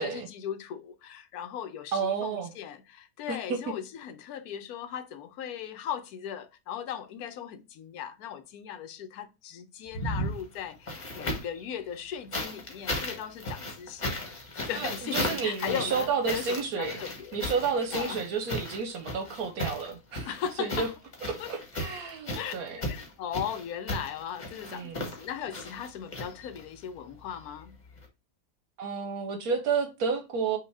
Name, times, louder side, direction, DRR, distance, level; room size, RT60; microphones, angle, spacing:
voice 1, 0.0-14.3 14.7-17.4 17.9-18.2 20.3-20.9 21.4-21.5 22.3-27.7, left 9 dB, 85° left, 1.2 m, -38 dB
voice 2, 1.9-2.5 3.3-3.7 14.7-17.0 17.3-20.3 20.6-20.9 21.3-22.8 24.7-25.1 28.8-30.6, right 5 dB, 80° right, 1.2 m, -31 dB
sound 1, 9.9-11.6 12.3-26.8 28.0-28.1, left 1 dB, 30° left, 1.2 m, -36 dB
5.6 x 2.7 x 3.3 m
omnidirectional pair, 1.5 m